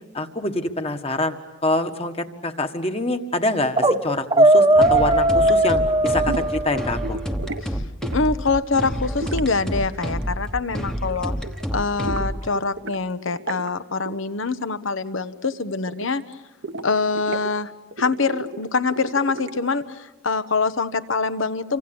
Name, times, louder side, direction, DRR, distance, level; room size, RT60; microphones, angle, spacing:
voice 1, 0.1-1.3 1.6-7.2, left 2 dB, 30° left, 6 dB, 1.6 m, -25 dB
sound 1, 3.8-4.0 4.3-7.1, right 1 dB, 25° right, 1.1 m, -18 dB
sound 2, 4.8-12.5, equal, 5° left, 1.1 m, -29 dB
sound 3, 6.3-6.6 7.0-7.6 8.0-8.4 9.2-10.6 10.9-11.2 11.4-13.0 13.3-13.7 14.0-14.2 14.4-14.9 15.2-16.3 16.6-17.5 17.9-19.7, right 3 dB, 70° right, 1.1 m, -34 dB
voice 2, 8.1-11.3 11.7-16.2 16.8-17.7 18.0-21.8, left 4 dB, 75° left, 12 dB, 1.1 m, -24 dB
29.0 x 25.5 x 7.1 m, 1.1 s
head